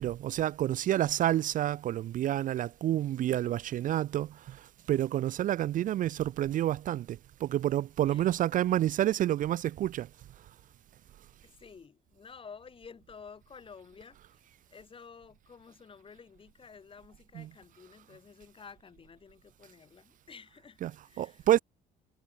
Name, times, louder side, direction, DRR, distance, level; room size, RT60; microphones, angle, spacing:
voice 1, 0.0-10.1 17.4-17.5 20.8-20.9 21.2-21.6, right 12 dB, 50° right, 0.4 m, -29 dB
voice 2, 2.9-3.6 8.1-8.3 11.4-14.4 14.7-21.5, left 5 dB, 30° left, 4.3 m, -52 dB
cardioid pair, 110°, 17 cm